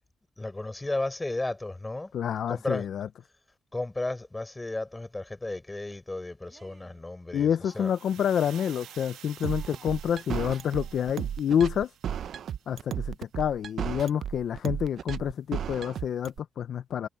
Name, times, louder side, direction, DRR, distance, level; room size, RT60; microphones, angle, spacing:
voice 1, 0.4-2.1 2.5-2.9 3.7-7.9, left 2 dB, 15° left, 4.4 m, -34 dB
voice 2, 2.1-3.1 7.3-11.9 12.7-17.1, left 8 dB, 65° left, 0.7 m, -28 dB
Cheering, 6.4-7.1 7.4-8.1 8.4-9.1 9.4-11.2, right 5 dB, 40° right, 7.3 m, -56 dB
sound 1, 7.7-12.8, right 11 dB, 80° right, 1.4 m, -51 dB
sound 2, 9.4-16.4, right 9 dB, 65° right, 0.7 m, -33 dB
cardioid pair, 90°, 0 cm